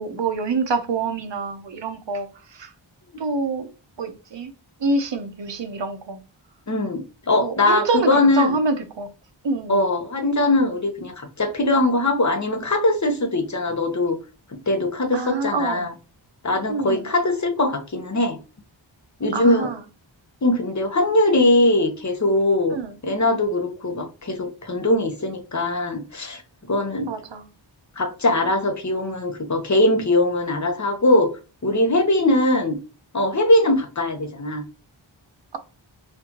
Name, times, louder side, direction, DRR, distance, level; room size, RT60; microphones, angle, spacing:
voice 1, 0.0-2.7 3.2-3.7 4.0-4.5 4.8-6.2 7.4-9.1 9.4-9.8 15.1-15.9 16.7-17.0 19.3-19.8 22.7-22.9 27.1-27.5, right 3 dB, 65° right, 0.8 m, -26 dB
voice 2, 6.7-8.6 9.7-14.2 14.7-15.9 16.4-18.4 19.2-19.7 20.4-22.8 23.0-26.4 26.7-27.1 28.0-31.3 31.6-32.8 33.1-34.6, left 1 dB, 35° left, 0.9 m, -21 dB
4.3 x 2.6 x 2.9 m
wide cardioid pair, 60°, 47 cm